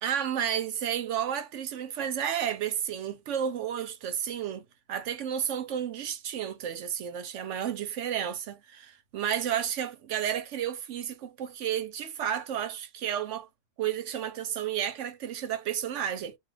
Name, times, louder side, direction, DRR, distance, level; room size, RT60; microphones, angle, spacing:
voice 1, 0.0-13.5 13.8-16.4, right 9 dB, 65° right, 0.9 m, -32 dB
2.4 x 2.4 x 3.2 m
omnidirectional pair, 1.5 m